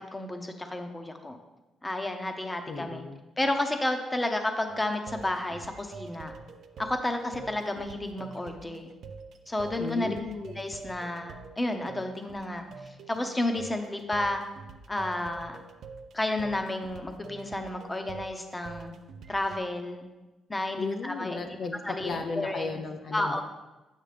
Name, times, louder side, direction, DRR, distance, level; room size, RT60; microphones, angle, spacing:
voice 1, 0.0-1.4 1.8-3.0 3.4-6.3 6.8-8.9 9.5-10.1 10.5-14.4 14.9-15.6 16.1-18.9 19.3-20.1 20.5-21.4 21.8-22.8 23.1-23.4, left 1 dB, 15° left, 5 dB, 0.9 m, -31 dB
voice 2, 2.7-3.2 9.8-10.6 20.8-23.4, left 4 dB, 50° left, 4 dB, 0.6 m, -35 dB
sound 1, 4.7-19.6, right 4 dB, 65° right, 0.5 m, -46 dB
9.1 x 6.2 x 3.4 m, 1.1 s
cardioid pair, 90°, 0 cm